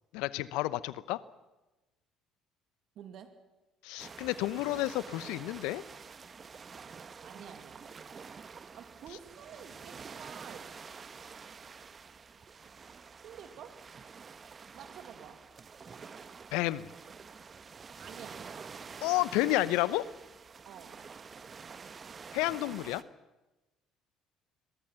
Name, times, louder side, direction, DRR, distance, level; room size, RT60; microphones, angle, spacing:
voice 1, 0.1-1.2 3.8-5.8 16.5-16.9 19.0-20.1 22.3-23.0, left 17 dB, 70° left, 18 dB, 0.9 m, -30 dB
voice 2, 3.0-3.4 7.2-7.9 8.7-10.7 13.2-13.8 14.7-15.4 18.0-18.5 20.6-21.0, right 8 dB, 60° right, 8 dB, 2.4 m, -49 dB
sound 1, 4.0-23.0, right 5 dB, 35° right, 1.4 m, -48 dB
29.0 x 22.0 x 5.9 m, 1.0 s
hypercardioid pair, 55°, 0 cm